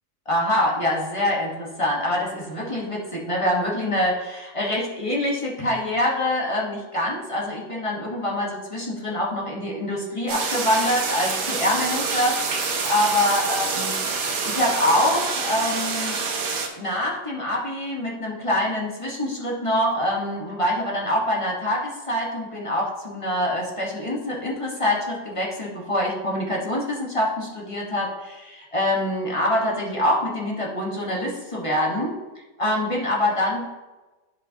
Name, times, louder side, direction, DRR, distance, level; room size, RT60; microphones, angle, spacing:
voice 1, 0.3-13.9 14.4-16.2 16.8-32.2 32.6-33.7, left 1 dB, 20° left, -3 dB, 1.1 m, -25 dB
sound 1, 10.3-16.7, right 4 dB, 80° right, 1.6 m, -27 dB
11.0 x 5.0 x 2.8 m, 1.2 s
omnidirectional pair, 1.8 m